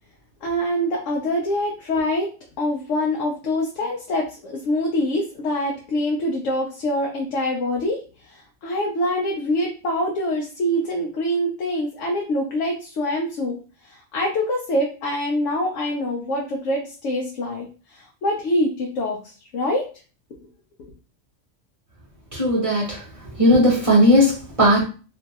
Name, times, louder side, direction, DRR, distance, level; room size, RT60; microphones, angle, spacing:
voice 1, 0.4-2.3 2.6-8.0 8.3-13.6 13.9-19.8, left 1 dB, 75° left, 0 dB, 0.9 m, -25 dB
voice 2, 22.3-23.0 23.4-24.8, equal, 35° right, -2 dB, 0.7 m, -17 dB
2.9 x 2.6 x 2.3 m, 0.37 s
omnidirectional pair, 1.3 m